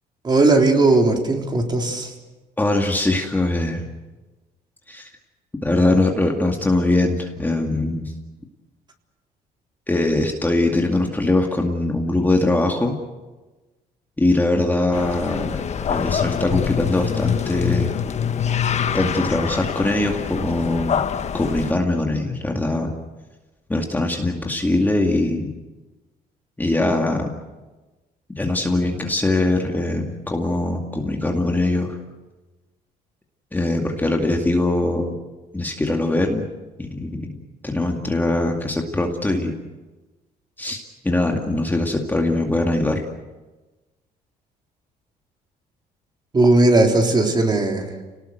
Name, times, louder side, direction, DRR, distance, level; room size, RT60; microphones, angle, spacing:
voice 1, 0.2-2.1 46.3-47.9, right 2 dB, 25° right, 2 dB, 3.7 m, -17 dB
voice 2, 2.6-3.9 4.9-5.1 5.6-8.1 9.9-13.0 14.2-15.6 15.9-17.9 18.9-21.0 21.3-22.9 23.7-25.5 26.6-27.3 28.3-32.0 33.5-35.2 35.5-36.5 36.8-39.5 40.6-43.0, left 2 dB, 10° left, 2 dB, 2.2 m, -22 dB
sound 1, 14.9-21.7, left 8 dB, 40° left, 1.2 m, -25 dB
28.5 x 19.0 x 8.0 m, 1.2 s
cardioid pair, 110°, 17 cm